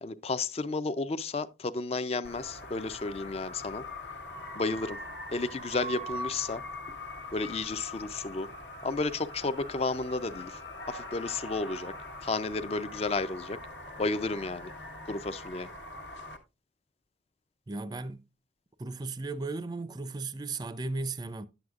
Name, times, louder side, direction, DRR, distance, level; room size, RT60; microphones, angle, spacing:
voice 1, 0.0-3.8 4.5-5.0 5.3-6.6 7.3-8.5 8.8-10.6 10.9-11.9 12.2-13.6 14.0-14.7 15.1-15.7, left 3 dB, 35° left, 0.4 m, -32 dB
sound 1, 2.2-16.4, left 1 dB, 70° left, 1.3 m, -42 dB
voice 2, 17.7-18.2 18.8-21.5, right 3 dB, 20° right, 0.4 m, -35 dB
10.5 x 7.8 x 2.4 m
head